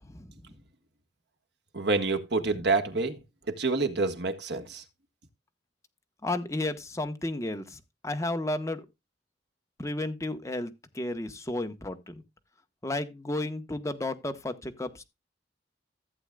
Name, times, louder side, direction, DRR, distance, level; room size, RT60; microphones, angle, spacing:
voice 1, 1.7-3.2 3.6-4.8, right 3 dB, 65° right, 1.6 m, -27 dB
voice 2, 6.2-7.8 8.0-8.8 9.8-12.2 12.8-15.0, left 2 dB, 15° left, 1.2 m, -32 dB
15.0 x 8.2 x 2.3 m
head